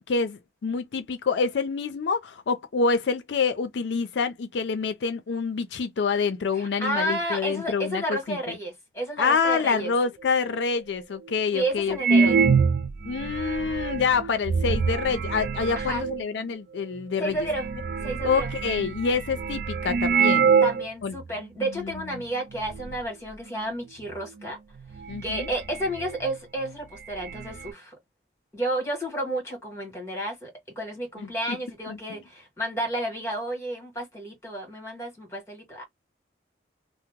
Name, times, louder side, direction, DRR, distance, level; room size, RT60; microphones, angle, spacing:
voice 1, 0.1-8.0 8.3-8.5 9.2-12.4 13.1-17.4 18.2-20.5 21.0-21.2 21.6-21.9 25.1-25.5 31.5-31.6 31.9-32.0, left 5 dB, 80° left, 0.4 m, -27 dB
voice 2, 6.5-9.9 11.5-12.4 15.7-16.0 17.2-17.7 18.0-18.5 20.6-24.6 25.2-28.0 28.5-35.8, right 1 dB, 15° left, 1.5 m, -31 dB
sound 1, 10.5-10.6 11.3-11.4 11.9-16.2 17.0-17.1 17.3-20.9 21.2-21.3 21.9-22.2 22.5-23.0 24.3-24.4 24.8-26.4 26.6-26.7 27.0-27.7, right 5 dB, 55° right, 0.3 m, -25 dB
2.8 x 2.0 x 3.5 m
head